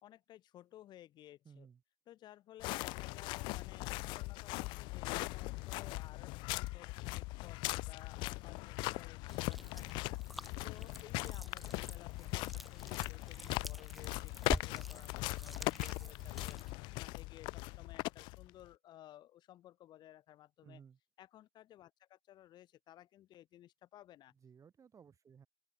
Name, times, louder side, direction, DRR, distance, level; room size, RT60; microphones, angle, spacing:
voice 1, 0.0-1.7 2.1-20.8 21.2-24.3, left 13 dB, 70° left, 3.0 m, -57 dB
voice 2, 1.4-1.8 17.0-17.1 20.6-21.0 24.3-25.5, right 7 dB, 45° right, 4.5 m, -58 dB
sound 1, 2.6-18.7, left 24 dB, 90° left, 0.9 m, -40 dB
sound 2, 9.3-16.7, equal, ahead, 2.8 m, -47 dB
open air
supercardioid pair, 80°, 8 cm